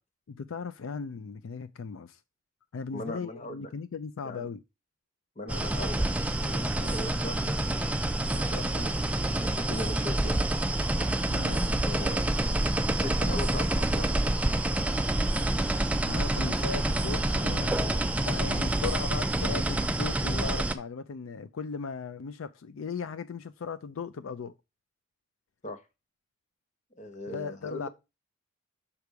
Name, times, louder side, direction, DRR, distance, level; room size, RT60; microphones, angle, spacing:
voice 1, 0.3-2.2 2.7-4.6 11.3-11.6 16.0-24.5 27.3-27.9, left 5 dB, 75° left, 0.4 m, -37 dB
voice 2, 2.9-3.7 4.2-4.5 5.4-7.6 8.4-10.4 11.8-12.3 13.0-14.3 25.6-25.8 27.0-27.9, left 1 dB, 35° left, 1.0 m, -39 dB
sound 1, 5.5-20.7, right 1 dB, 5° right, 0.3 m, -27 dB
6.6 x 6.0 x 4.6 m
head